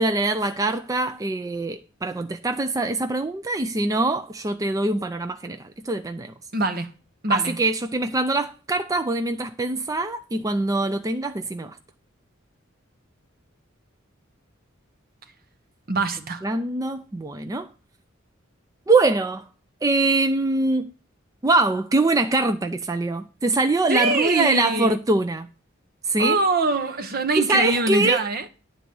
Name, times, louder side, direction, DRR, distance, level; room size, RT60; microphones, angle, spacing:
voice 1, 0.0-6.3 7.3-11.8 16.4-17.7 18.9-19.5 19.8-20.9 21.4-25.5 26.0-26.4 27.4-28.2, right 2 dB, 15° right, 0.4 m, -23 dB
voice 2, 6.5-6.9 7.2-7.6 15.9-16.4 23.9-24.9 26.2-28.5, right 2 dB, 50° right, 1.1 m, -23 dB
11.0 x 4.0 x 7.7 m
head